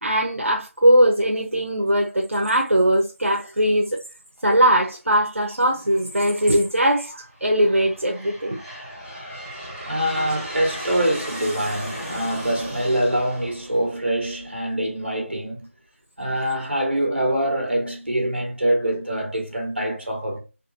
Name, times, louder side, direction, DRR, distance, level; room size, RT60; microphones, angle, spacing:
voice 1, 0.0-4.0 4.4-8.6, right 1 dB, 65° right, 1.1 m, -20 dB
Aircraft, 5.8-6.4 7.1-14.6, equal, 15° left, 1.9 m, -36 dB
voice 2, 9.9-15.7 16.2-20.4, right 1 dB, 50° right, 1.8 m, -24 dB
4.2 x 3.2 x 2.8 m
figure-of-eight pair, 180°, 7 cm